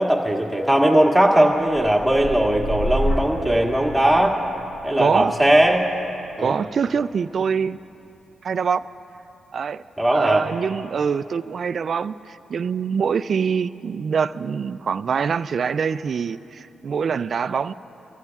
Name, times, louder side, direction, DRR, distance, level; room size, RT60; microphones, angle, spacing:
voice 1, 0.0-4.4 4.8-5.9 6.4-6.5 10.0-10.5, right 1 dB, 5° right, -1 dB, 2.0 m, -18 dB
sound 1, 1.6-9.4 9.9-10.3, equal, 85° left, 3.8 m, -32 dB
voice 2, 5.0-5.3 6.4-7.8 8.4-8.8 9.5-9.8 10.1-17.7, right 6 dB, 60° right, 15 dB, 0.3 m, -24 dB
28.0 x 14.5 x 2.4 m, 2.9 s
supercardioid pair, 55°, 0 cm